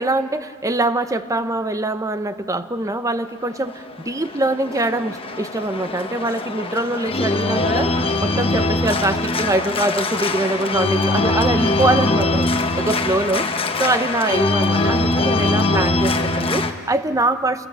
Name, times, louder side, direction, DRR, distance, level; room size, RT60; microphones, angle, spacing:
voice 1, 0.0-13.5 13.8-17.7, right 2 dB, 15° right, 11 dB, 0.8 m, -23 dB
Organ, 3.5-16.7, left 2 dB, 25° left, 1.1 m, -22 dB
29.0 x 21.0 x 7.6 m, 2.3 s
head